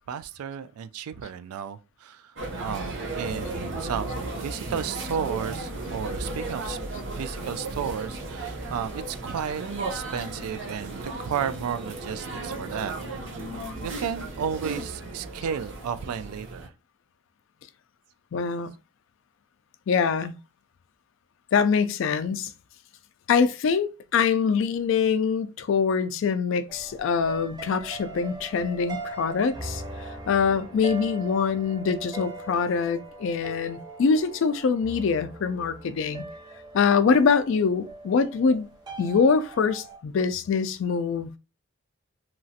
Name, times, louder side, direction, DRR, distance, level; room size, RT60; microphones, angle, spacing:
voice 1, 0.1-2.3 2.6-13.0 13.3-13.5 13.8-16.7, right 7 dB, 80° right, 0.3 m, -33 dB
sound 1, 2.4-16.7, right 2 dB, 55° right, 0.7 m, -35 dB
voice 2, 18.3-18.7 19.9-20.3 21.5-22.5 23.3-36.2 36.7-38.7 39.0-41.3, left 5 dB, 60° left, 0.3 m, -24 dB
sound 2, 26.7-40.0, right 2 dB, 20° right, 0.5 m, -40 dB
2.9 x 2.4 x 2.7 m
head